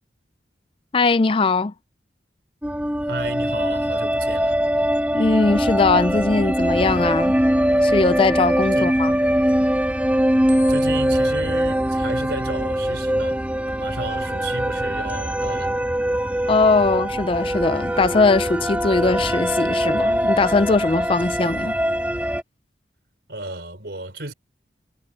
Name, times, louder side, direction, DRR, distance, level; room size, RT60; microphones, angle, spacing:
voice 1, 0.9-1.7 5.1-7.4 7.8-9.1 16.5-21.7, left 3 dB, 30° left, 0.4 m, -20 dB
sound 1, 2.6-22.4, equal, 10° right, 2.2 m, -22 dB
voice 2, 3.1-4.6 8.7-8.9 10.7-13.4 13.7-15.7 23.3-24.3, right 2 dB, 65° right, 4.4 m, -33 dB
head